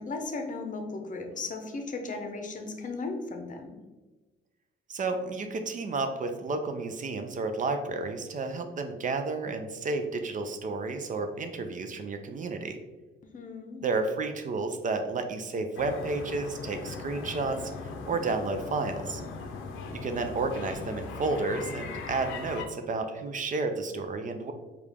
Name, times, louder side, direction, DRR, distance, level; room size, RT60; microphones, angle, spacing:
voice 1, 0.0-3.7 13.3-13.8, left 3 dB, 40° left, 5 dB, 0.7 m, -36 dB
voice 2, 4.9-12.8 13.8-19.2 19.9-24.5, right 3 dB, 40° right, 7 dB, 0.5 m, -31 dB
sound 1, 15.8-22.7, left 4 dB, 85° left, 0.5 m, -39 dB
4.7 x 2.4 x 3.4 m, 1.2 s
cardioid pair, 90°, 20 cm